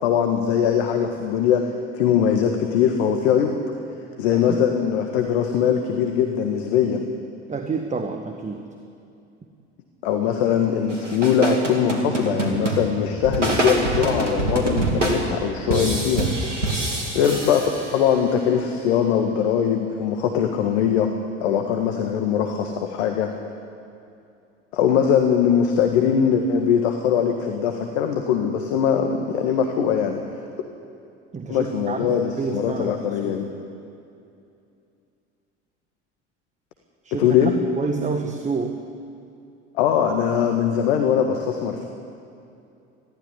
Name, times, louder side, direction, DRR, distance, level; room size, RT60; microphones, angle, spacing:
voice 1, 0.0-3.6 4.2-7.1 10.0-16.3 17.1-21.1 21.4-23.3 24.7-30.2 31.5-33.5 37.2-37.6 39.7-41.9, left 8 dB, 60° left, 4 dB, 1.8 m, -21 dB
voice 2, 4.3-4.6 7.5-8.6 31.3-32.9 33.2-33.4 37.0-37.3 37.8-38.8, right 4 dB, 20° right, 5 dB, 1.6 m, -28 dB
sound 1, 10.9-18.3, right 2 dB, 85° right, 2.8 m, -25 dB
20.5 x 15.0 x 9.9 m, 2.6 s
figure-of-eight pair, 70°, 36 cm